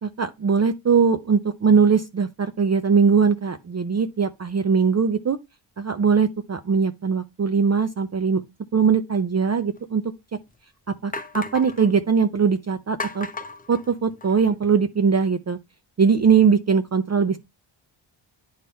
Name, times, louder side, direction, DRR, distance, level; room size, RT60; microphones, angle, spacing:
voice 1, 0.0-5.4 5.8-8.4 8.7-10.0 11.0-13.3 13.7-15.6 16.0-17.4, right 6 dB, 35° right, 0.6 m, -20 dB
sound 1, 9.8-9.9 10.5-10.6 11.1-11.9 13.0-14.5, left 3 dB, 15° left, 0.9 m, -35 dB
10.5 x 3.7 x 4.2 m
wide cardioid pair, 125°, 49 cm